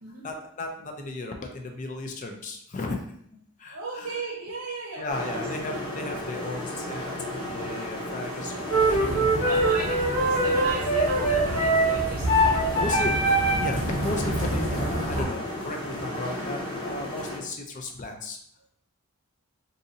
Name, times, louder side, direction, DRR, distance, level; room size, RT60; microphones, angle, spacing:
voice 1, 0.2-3.1 3.6-4.1 5.0-10.1 12.8-13.3 13.6-18.4, left 2 dB, 35° left, 4 dB, 0.5 m, -35 dB
voice 2, 3.7-5.5 9.4-13.1, right 3 dB, 70° right, -1 dB, 0.7 m, -37 dB
sound 1, 5.1-17.4, left 1 dB, 20° left, 0.8 m, -34 dB
sound 2, 8.7-13.8, right 1 dB, 85° left, 0.9 m, -23 dB
sound 3, 8.7-15.2, right 1 dB, 70° left, 1.5 m, -31 dB
2.6 x 2.6 x 3.9 m, 0.66 s
head